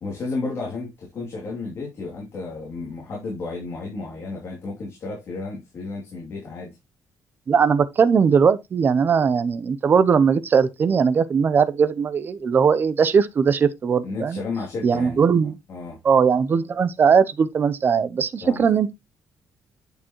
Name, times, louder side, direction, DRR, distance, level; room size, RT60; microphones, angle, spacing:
voice 1, 0.0-6.8 14.0-15.2 15.7-16.0 18.4-18.6, left 3 dB, 40° left, 2.8 m, -32 dB
voice 2, 7.5-14.4 14.8-15.5 16.0-18.9, right 6 dB, 30° right, 0.6 m, -19 dB
8.7 x 6.8 x 3.0 m
cardioid pair, 175°, 7 cm